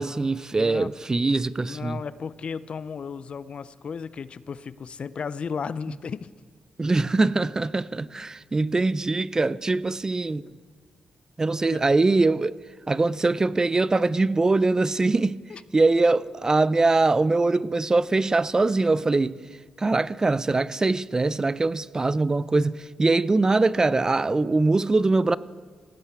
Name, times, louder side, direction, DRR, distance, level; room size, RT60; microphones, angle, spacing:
voice 1, 0.0-2.0 6.8-10.4 11.4-12.6 12.9-15.4 15.7-19.4 19.8-25.4, right 3 dB, 30° right, 0.4 m, -22 dB
voice 2, 0.6-0.9 1.7-6.3 15.5-15.6, left 6 dB, 55° left, 0.4 m, -34 dB
17.0 x 8.5 x 4.7 m
cardioid pair, 60°, 2 cm